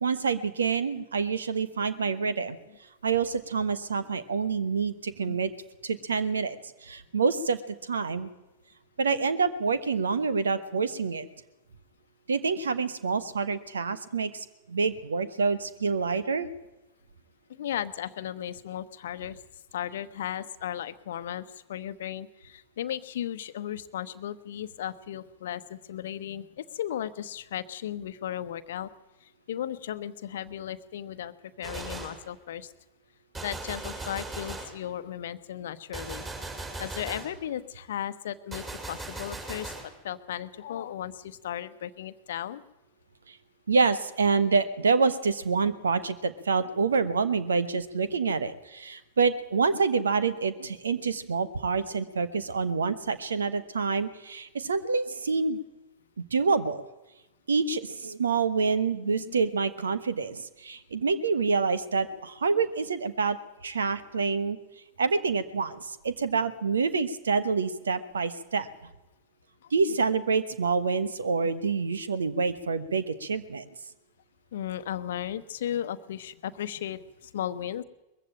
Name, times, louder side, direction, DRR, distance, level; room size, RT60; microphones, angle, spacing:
voice 1, 0.0-2.6 3.0-5.5 5.8-6.6 6.8-8.3 9.0-11.3 12.3-16.5 43.3-43.4 43.7-55.6 56.3-56.8 57.5-63.4 63.6-64.6 65.0-68.7 69.7-73.7, right 4 dB, 70° right, 14 dB, 1.3 m, -27 dB
voice 2, 17.6-19.4 19.7-28.9 29.5-32.7 33.4-36.3 36.8-39.7 40.0-42.6 59.0-59.3 62.1-62.2 69.6-69.7 74.5-77.8, left 10 dB, 60° left, 12 dB, 1.0 m, -35 dB
Gunshot gunfire, 31.6-32.3 33.3-34.8 35.9-37.4 38.5-39.9, right 3 dB, 20° right, 5.4 m, -38 dB
21.0 x 15.0 x 8.8 m, 0.98 s
figure-of-eight pair, 90°, 0 cm